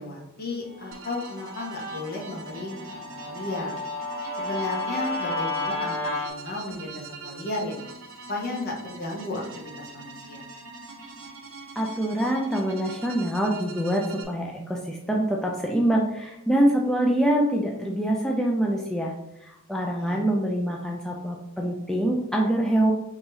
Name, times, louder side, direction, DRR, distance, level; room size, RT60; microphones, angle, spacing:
voice 1, 0.0-2.8 3.2-3.7 4.4-7.8 8.3-9.4 9.8-10.4 20.0-20.2, left 2 dB, 45° left, -2 dB, 1.1 m, -34 dB
Guitar, 0.8-6.3, left 2 dB, 25° right, 1.5 m, -32 dB
sound 1, 0.9-14.2, right 4 dB, 65° right, 0.7 m, -43 dB
voice 2, 11.8-19.1 19.7-22.9, right 1 dB, ahead, -1 dB, 0.4 m, -25 dB
3.9 x 2.9 x 3.9 m, 0.84 s
head